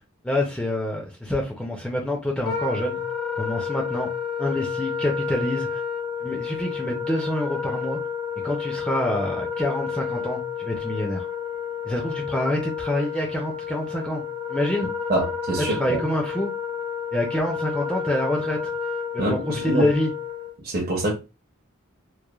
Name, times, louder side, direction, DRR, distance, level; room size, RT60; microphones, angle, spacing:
voice 1, 0.2-3.0 3.4-4.1 4.4-5.8 6.2-8.0 8.4-11.3 11.8-14.9 15.7-16.5 17.1-18.7 19.1-20.1, left 1 dB, 5° left, 0.4 m, -27 dB
Wind instrument woodwind instrument, 2.4-20.5, left 6 dB, 80° left, 1.1 m, -30 dB
voice 2, 15.1-16.0 19.2-19.9 20.6-21.1, right 2 dB, 45° right, 0.6 m, -25 dB
3.0 x 2.0 x 2.2 m
head